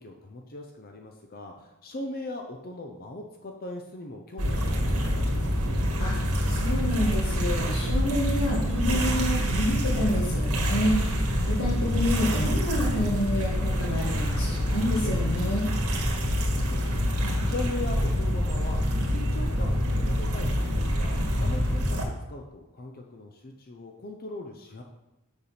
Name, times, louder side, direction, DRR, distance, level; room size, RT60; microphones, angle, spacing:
voice 1, 0.0-5.2 16.7-18.8 19.1-24.8, left 2 dB, 40° left, 3 dB, 0.7 m, -39 dB
sound 1, 4.4-22.0, equal, 85° right, 1.8 m, -26 dB
voice 2, 6.4-11.0 11.5-15.7, equal, 70° left, -7 dB, 1.8 m, -29 dB
6.9 x 6.9 x 5.8 m, 0.97 s
head